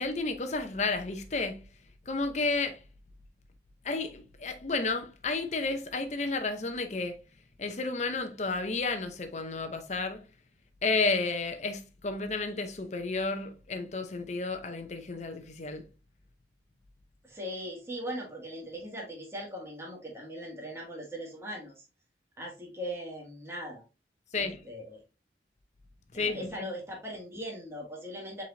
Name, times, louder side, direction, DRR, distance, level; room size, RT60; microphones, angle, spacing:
voice 1, 0.0-1.6 2.1-2.8 3.8-7.2 7.6-10.2 10.8-15.9 24.3-24.6 26.1-26.7, left 3 dB, 40° left, 0.7 m, -32 dB
voice 2, 17.2-21.8 22.4-23.8 24.4-25.0 26.1-28.4, equal, 15° right, 1.6 m, -40 dB
4.8 x 4.1 x 2.7 m
head